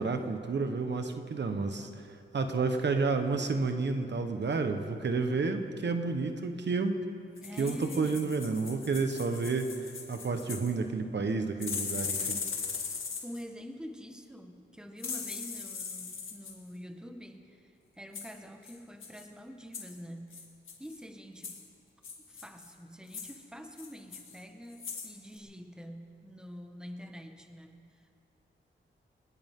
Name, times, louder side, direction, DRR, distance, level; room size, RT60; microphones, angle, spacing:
voice 1, 0.0-2.1 2.3-7.0 7.6-9.8 10.1-12.4, right 4 dB, 65° right, 6 dB, 1.2 m, -30 dB
sound 1, 7.4-10.7 11.6-13.4 15.0-16.5 18.1-18.3 18.6-18.7 19.0-19.2 19.7-20.0 20.3-21.0 21.4-21.6 22.0-22.7 23.1-23.3 23.8-24.4 24.7-25.1 25.4-25.5, left 5 dB, 85° left, 2.1 m, -39 dB
voice 2, 7.4-8.4 12.7-20.4 20.8-21.6 22.2-28.1, equal, 5° right, 5 dB, 1.5 m, -46 dB
19.5 x 19.5 x 3.8 m, 2.5 s
cardioid pair, 70°, 20 cm